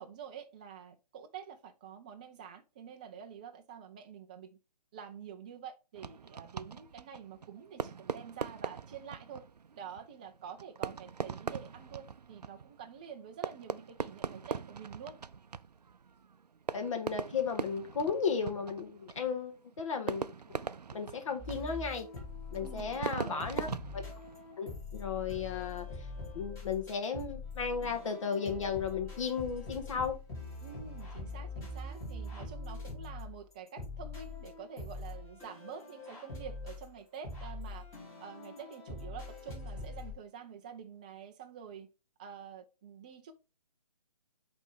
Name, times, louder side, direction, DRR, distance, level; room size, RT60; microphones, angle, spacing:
voice 1, 0.0-4.6 4.9-9.5 9.7-15.2 22.6-23.6 30.6-37.9 38.2-41.9 42.2-43.3, right 7 dB, 15° right, 0.3 m, -48 dB
Fireworks, 6.0-24.8, right 6 dB, 90° right, 0.4 m, -42 dB
voice 2, 16.7-20.6 20.9-22.1 22.5-23.7 23.9-24.0 24.6-26.1 26.3-30.2, left 6 dB, 50° left, 1.5 m, -35 dB
sound 1, 21.4-23.1 23.4-40.1, left 2 dB, 15° left, 2.7 m, -43 dB
8.2 x 3.4 x 3.6 m
figure-of-eight pair, 145°, 20 cm